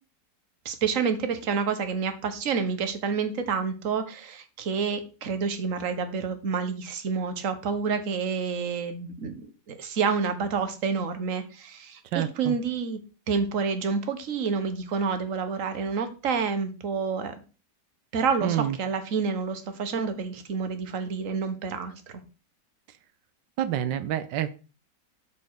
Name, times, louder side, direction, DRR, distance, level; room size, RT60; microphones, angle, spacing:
voice 1, 0.6-9.5 9.8-13.0 13.3-17.3 18.1-22.2, right 5 dB, 50° right, 9 dB, 1.5 m, -28 dB
voice 2, 12.1-12.6 18.4-18.8 23.6-24.5, right 11 dB, 85° right, 12 dB, 1.3 m, -28 dB
12.5 x 4.5 x 4.7 m, 0.35 s
omnidirectional pair, 1.9 m